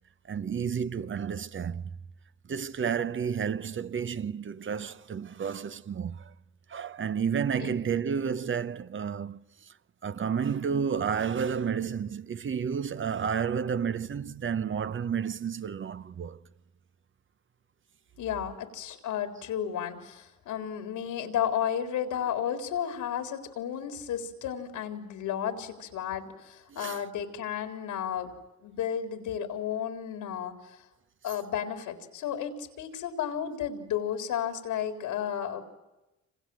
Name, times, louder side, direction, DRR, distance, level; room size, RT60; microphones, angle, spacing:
voice 1, 0.3-2.0 2.5-6.3 6.7-9.7 10.0-16.4 26.7-27.0, right 7 dB, 40° right, 0.9 m, -31 dB
voice 2, 18.2-28.3 28.6-30.8 31.2-35.6, left 9 dB, 85° left, 3.8 m, -33 dB
27.5 x 27.0 x 7.8 m
cardioid pair, 90°, 30 cm